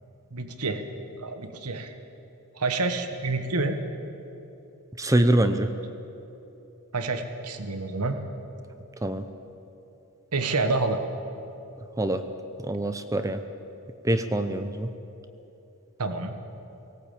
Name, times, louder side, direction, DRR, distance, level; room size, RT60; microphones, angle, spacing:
voice 1, 0.3-0.8 1.2-1.9 2.6-3.8 6.9-8.2 10.3-11.0 16.0-16.3, right 3 dB, 90° right, 8 dB, 1.4 m, -28 dB
voice 2, 5.0-5.7 9.0-9.2 12.0-12.2 12.6-13.4 14.0-14.9, right 1 dB, 15° right, 10 dB, 0.7 m, -24 dB
18.0 x 17.5 x 8.6 m, 2.9 s
head